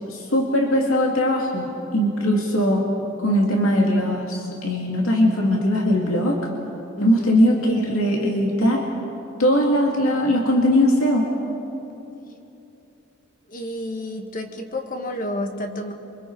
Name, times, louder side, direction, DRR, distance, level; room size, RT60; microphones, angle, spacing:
voice 1, 0.1-2.9 3.2-6.4 7.0-8.9 9.4-11.3, equal, 85° left, -1 dB, 2.5 m, -20 dB
voice 2, 7.0-7.4 12.3-12.5 13.5-15.9, left 1 dB, 40° left, 4 dB, 1.7 m, -30 dB
27.0 x 25.0 x 4.8 m, 2.9 s
head